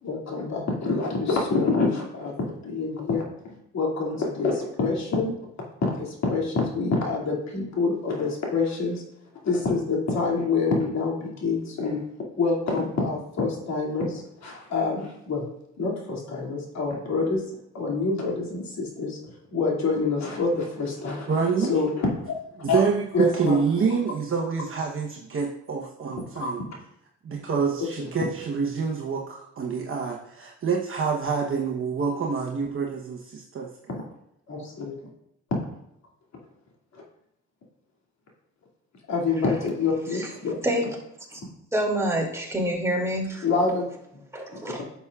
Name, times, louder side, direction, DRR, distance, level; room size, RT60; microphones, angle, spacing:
voice 1, 0.0-2.3 2.6-3.2 3.7-5.3 5.8-9.0 9.4-12.0 12.4-15.5 15.8-17.4 17.7-19.2 19.5-21.3 21.6-22.4 22.7-22.8 23.1-23.6 26.4-26.5 28.0-28.1 33.9-34.0 34.5-34.9 36.9-37.0 39.1-40.6 43.4-44.2, left 4 dB, 65° left, -2 dB, 2.6 m, -26 dB
voice 2, 21.3-21.8 22.6-26.6 27.2-33.7, right 5 dB, 45° right, 0 dB, 1.0 m, -27 dB
voice 3, 41.7-43.5 44.3-44.8, equal, 10° right, -2 dB, 2.5 m, -27 dB
10.5 x 6.9 x 2.4 m, 0.78 s
cardioid pair, 90°, 30 cm